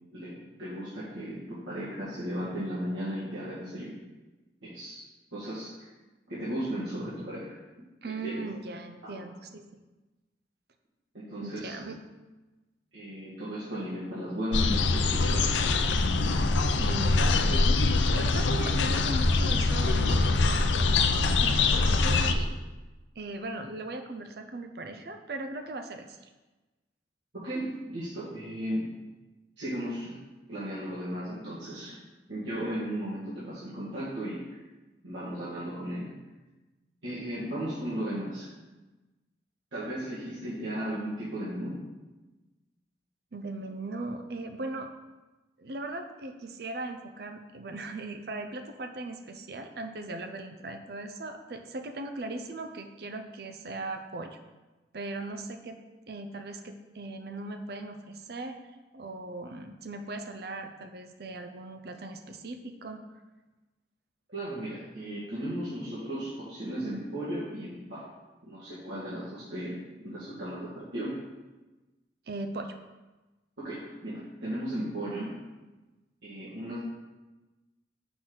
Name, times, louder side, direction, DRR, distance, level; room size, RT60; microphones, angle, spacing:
voice 1, 0.1-3.9 4.6-5.9 6.3-7.5 8.1-8.4 9.0-9.2 11.1-11.9 12.9-16.0 27.3-28.8 29.6-30.2 30.5-32.0 32.3-34.4 35.0-36.1 37.0-38.5 39.7-41.8 64.3-68.0 68.4-71.2 73.6-75.3 76.2-76.8, right 1 dB, 85° right, -11 dB, 1.9 m, -35 dB
voice 2, 8.0-9.7 11.4-12.0 16.7-17.8 18.1-22.5 23.2-26.3 43.3-44.9 45.6-54.4 54.9-55.8 56.1-58.6 58.9-63.0 72.3-72.8, right 2 dB, 60° right, 6 dB, 0.5 m, -39 dB
sound 1, 14.5-22.3, left 3 dB, 90° left, 0.5 m, -24 dB
6.0 x 3.9 x 6.1 m, 1.2 s
head